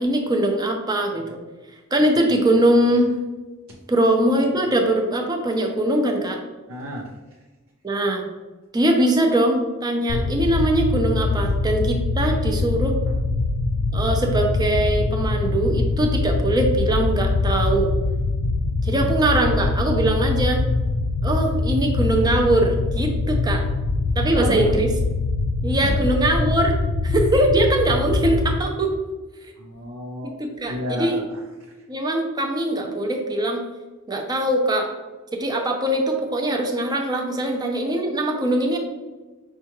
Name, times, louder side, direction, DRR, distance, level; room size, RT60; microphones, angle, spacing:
voice 1, 0.0-1.4 1.9-3.1 3.9-6.4 7.8-8.3 8.7-13.0 13.9-17.9 18.8-20.6 21.2-23.6 24.2-24.9 25.6-28.9 30.2-31.2 31.9-33.6 34.1-34.9 35.3-38.8, right 1 dB, 20° right, 2 dB, 0.5 m, -22 dB
voice 2, 6.7-7.1 18.8-19.1 24.3-24.7 25.8-26.1 29.6-31.4, equal, 80° right, -3 dB, 0.6 m, -31 dB
sound 1, 10.1-28.6, left 3 dB, 80° left, 0.3 m, -23 dB
5.5 x 2.3 x 2.9 m, 1.2 s
head